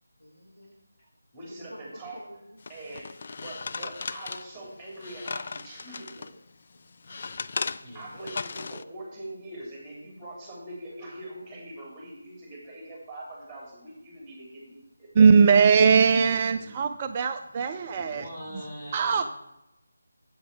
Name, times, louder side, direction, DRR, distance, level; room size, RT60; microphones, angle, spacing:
voice 1, 0.2-0.8 1.4-2.6 6.7-7.2 16.2-16.4, left 1 dB, 85° left, 1 dB, 2.5 m, -49 dB
voice 2, 1.3-2.2 2.7-6.3 7.9-15.1 15.5-15.7, right 1 dB, 5° right, -3 dB, 3.7 m, -43 dB
sound 1, 2.6-6.3 6.8-8.8, left 4 dB, 45° left, 0.4 m, -36 dB
voice 3, 7.1-7.4 7.8-8.1 16.1-16.8 17.9-19.2, equal, 20° left, -5 dB, 3.4 m, -42 dB
voice 4, 15.2-18.3 18.9-19.2, right 5 dB, 25° right, 7 dB, 0.4 m, -20 dB
8.7 x 8.1 x 4.7 m, 0.86 s
figure-of-eight pair, 160°, 0 cm